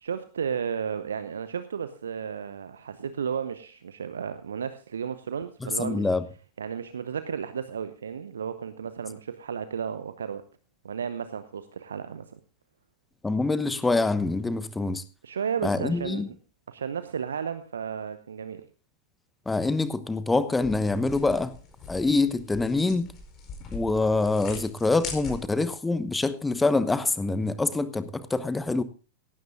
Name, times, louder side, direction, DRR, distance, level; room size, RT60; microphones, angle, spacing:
voice 1, 0.0-6.1 6.6-10.5 10.8-12.4 15.2-16.3 16.7-18.7, right 7 dB, 70° right, 0.8 m, -33 dB
voice 2, 5.6-6.2 13.2-15.0 15.6-16.3 19.5-21.5 21.9-23.1 23.7-28.8, left 3 dB, 10° left, 1.0 m, -25 dB
sound 1, 20.5-25.7, left 4 dB, 30° left, 4.6 m, -42 dB
17.5 x 15.5 x 2.6 m
figure-of-eight pair, 90°, 0 cm